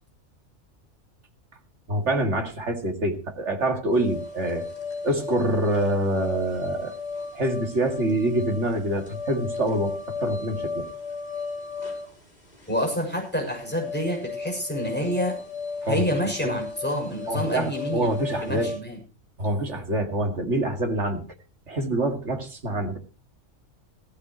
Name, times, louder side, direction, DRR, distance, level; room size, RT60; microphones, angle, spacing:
voice 1, 1.9-4.7 5.0-6.9 7.3-10.8 15.8-16.0 16.4-16.6 17.3-18.7 19.4-21.2 21.7-23.0, right 1 dB, 65° right, 5 dB, 2.6 m, -26 dB
sound 1, 3.9-18.8, left 4 dB, 35° left, 5.2 m, -35 dB
voice 2, 12.7-15.3 15.9-18.1 18.4-19.0, equal, 5° left, 0 dB, 6.7 m, -28 dB
16.0 x 14.5 x 3.0 m, 0.34 s
omnidirectional pair, 1.3 m